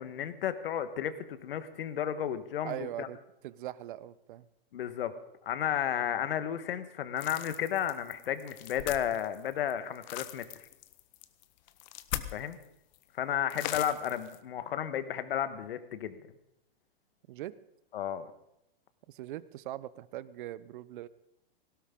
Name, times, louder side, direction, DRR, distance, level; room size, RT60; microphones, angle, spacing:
voice 1, 0.0-3.1 4.7-5.1 5.4-10.5 12.3-12.6 13.2-16.2 17.9-18.3, left 10 dB, 70° left, 11 dB, 1.4 m, -33 dB
voice 2, 2.6-3.2 3.4-4.5 17.3-17.5 19.1-21.1, right 13 dB, 60° right, 18 dB, 0.7 m, -41 dB
sound 1, 7.2-12.7 12.9-13.0 13.5-14.4, left 13 dB, 50° left, 1.0 m, -40 dB
18.0 x 16.5 x 3.7 m, 0.84 s
hypercardioid pair, 135°, 29 cm